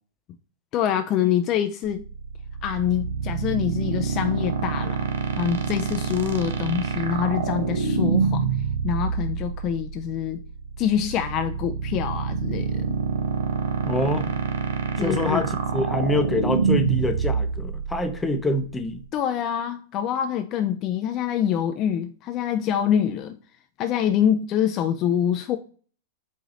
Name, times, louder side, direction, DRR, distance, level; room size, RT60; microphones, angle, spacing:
voice 1, 0.7-2.0 2.6-5.0 5.4-8.5 8.8-10.4 10.8-12.9 15.0-15.4 19.1-23.4 23.8-25.6, left 9 dB, 40° left, 0.4 m, -25 dB
sound 1, 1.8-19.0, right 5 dB, 70° right, 0.8 m, -26 dB
voice 2, 13.8-14.3 15.0-19.0, left 2 dB, 15° left, 0.7 m, -26 dB
4.8 x 2.7 x 4.0 m
hypercardioid pair, 110°, 0 cm